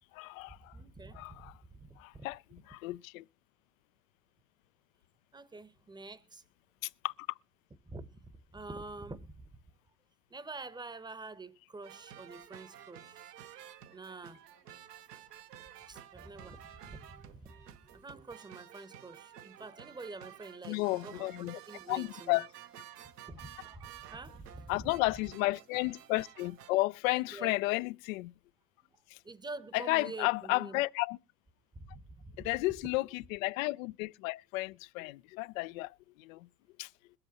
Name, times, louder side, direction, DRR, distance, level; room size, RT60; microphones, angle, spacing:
voice 1, 0.1-0.7 1.1-1.5 2.0-3.2 6.8-7.3 20.7-21.6 21.9-22.5 24.7-28.3 29.1-29.2 29.7-31.2 32.4-36.5 36.8-36.9, left 22 dB, 60° left, 0.5 m, -33 dB
voice 2, 0.7-2.3 5.3-6.4 7.9-8.2 8.5-9.5 10.3-13.2 13.9-14.4 15.9-17.5 17.9-22.4 23.3-24.9 27.1-27.6 29.2-30.8 31.8-32.5, right 3 dB, 10° right, 0.8 m, -47 dB
sound 1, 11.8-26.8, right 10 dB, 80° right, 1.1 m, -52 dB
22.0 x 7.9 x 2.8 m
hypercardioid pair, 80°, 47 cm